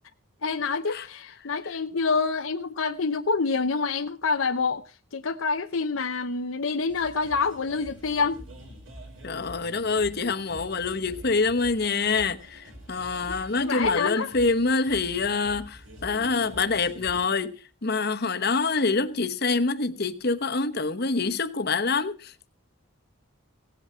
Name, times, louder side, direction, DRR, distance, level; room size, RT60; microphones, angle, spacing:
voice 1, 0.4-4.8 5.1-8.4 13.6-14.3, left 4 dB, 80° left, 0.8 m, -27 dB
sound 1, 6.9-17.3, equal, 70° right, 5.3 m, -46 dB
voice 2, 9.2-17.5 17.8-22.5, left 4 dB, 50° left, 1.1 m, -26 dB
17.0 x 8.5 x 5.6 m
head